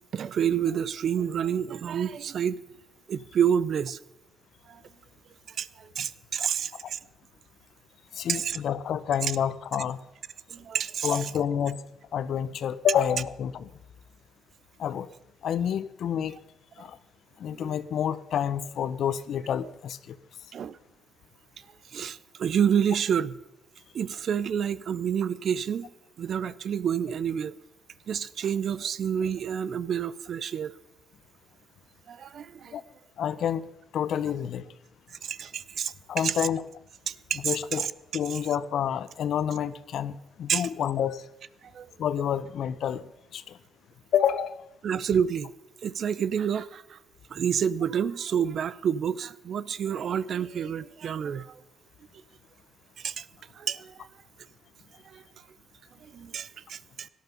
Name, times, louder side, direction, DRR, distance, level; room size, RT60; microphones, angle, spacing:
voice 1, 0.1-2.6 3.1-4.0 4.7-4.8 5.5-7.0 8.3-8.6 10.5-11.2 17.5-17.8 20.5-20.8 21.9-23.4 23.9-25.9 26.2-27.5 28.1-30.7 32.1-32.7 35.2-36.4 37.1-37.9 40.5-40.7 41.7-41.9 44.8-45.5 45.8-47.0 47.3-51.6 53.0-53.3 53.6-54.1 55.1-55.2 56.0-57.1, right 8 dB, 60° right, 0.6 m, -29 dB
voice 2, 8.1-10.0 11.0-11.8 12.1-13.7 14.8-15.1 15.4-16.4 16.8-17.0 17.4-20.2 32.7-32.8 33.2-33.7 33.9-34.7 36.1-36.6 37.4-41.2 42.0-43.6 44.1-44.6, left 9 dB, 70° left, 0.8 m, -28 dB
17.5 x 11.5 x 5.3 m
cardioid pair, 90°, 0 cm